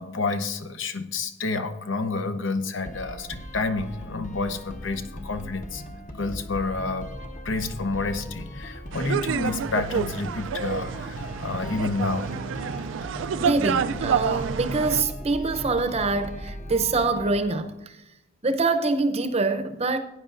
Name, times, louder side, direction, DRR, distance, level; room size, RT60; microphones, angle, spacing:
voice 1, 0.0-5.8 6.1-7.1 7.4-12.3, left 3 dB, 70° left, 0.8 m, -29 dB
sound 1, 2.9-17.4, left 1 dB, 40° left, 1.0 m, -38 dB
sound 2, 8.9-15.0, right 7 dB, 70° right, 0.4 m, -28 dB
voice 2, 13.4-18.0 18.4-20.0, right 3 dB, 35° right, 0.7 m, -25 dB
17.5 x 9.4 x 2.5 m
head